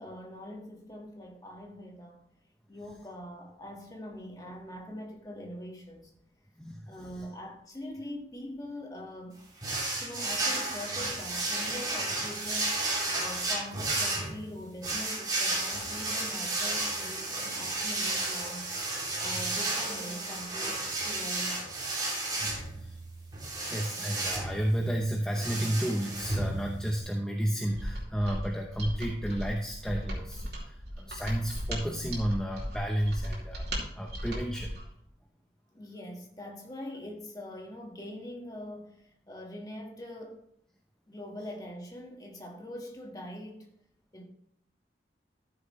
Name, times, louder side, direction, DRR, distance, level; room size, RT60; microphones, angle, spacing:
voice 1, 0.0-2.2 2.7-6.1 6.9-9.4 10.0-12.8 13.1-18.7 19.2-21.9 35.7-40.4 41.1-43.7 44.1-44.2, left 1 dB, 20° left, 1.6 m, -43 dB
voice 2, 6.6-7.0 9.9-10.0 22.4-23.0 23.7-34.8, equal, 5° left, 0.7 m, -32 dB
sound 1, 9.6-27.0, right 2 dB, 20° right, 2.9 m, -33 dB
Mechanisms, 27.7-34.9, equal, 70° right, 2.8 m, -37 dB
13.0 x 7.0 x 3.2 m
head